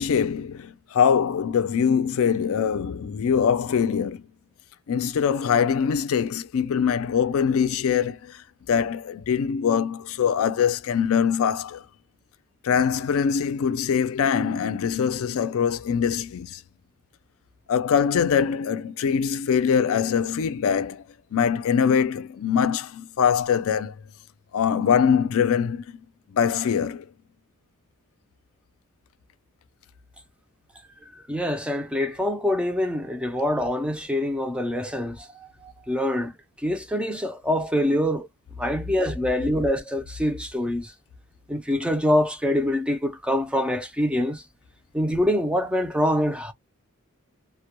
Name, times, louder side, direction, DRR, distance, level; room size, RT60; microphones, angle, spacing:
voice 1, 0.0-4.2 4.9-11.8 12.6-16.6 17.7-21.0 21.3-23.9 24.5-26.0 26.3-27.1, left 7 dB, 65° left, 0.4 m, -23 dB
voice 2, 31.3-36.3 36.6-38.3 38.6-40.9 41.5-44.4 44.9-46.5, left 1 dB, 5° right, 0.4 m, -25 dB
2.1 x 2.1 x 2.8 m
head